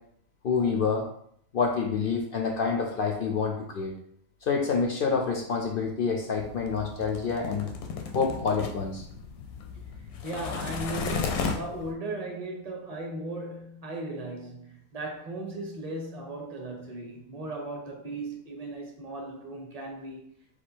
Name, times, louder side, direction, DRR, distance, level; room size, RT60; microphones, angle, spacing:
voice 1, 0.4-1.1 1.5-3.9 4.4-7.7 8.1-9.0, left 5 dB, 65° left, 0.5 m, -27 dB
sound 1, 6.4-11.9, left 5 dB, 85° left, 1.1 m, -35 dB
voice 2, 10.2-20.3, right 1 dB, 30° right, 0.8 m, -37 dB
4.2 x 2.4 x 4.4 m
omnidirectional pair, 1.5 m